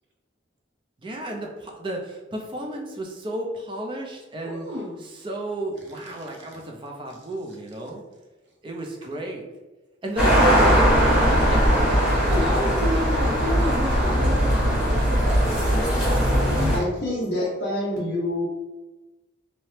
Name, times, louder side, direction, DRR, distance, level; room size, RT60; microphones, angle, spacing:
voice 1, 1.0-4.7 5.0-8.0 8.6-9.4 10.0-10.7 11.2-12.0, right 1 dB, 25° right, 0 dB, 0.4 m, -32 dB
voice 2, 4.4-5.1 6.2-6.3 10.4-10.8 12.2-17.5, equal, 60° right, -1 dB, 0.7 m, -32 dB
sound 1, 10.2-16.8, equal, 5° right, 1.0 m, -20 dB
voice 3, 16.4-18.5, left 1 dB, 55° left, -5 dB, 0.6 m, -27 dB
2.8 x 2.0 x 3.1 m, 1.1 s
head